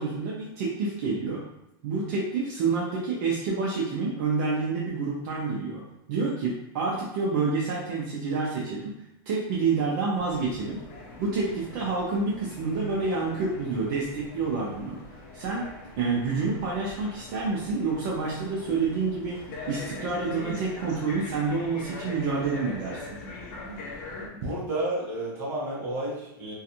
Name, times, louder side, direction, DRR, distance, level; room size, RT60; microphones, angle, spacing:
voice 1, 0.0-1.4 1.8-5.8 6.1-8.9 9.3-10.8 11.2-15.0 15.3-15.7 16.0-23.2, right 4 dB, 45° right, -5 dB, 0.5 m, -28 dB
sound 1, 10.2-24.3, left 2 dB, 45° left, 0.6 m, -42 dB
voice 2, 24.3-26.5, right 1 dB, 20° right, -7 dB, 0.9 m, -31 dB
2.4 x 2.3 x 2.8 m, 0.83 s
supercardioid pair, 165°, 13 cm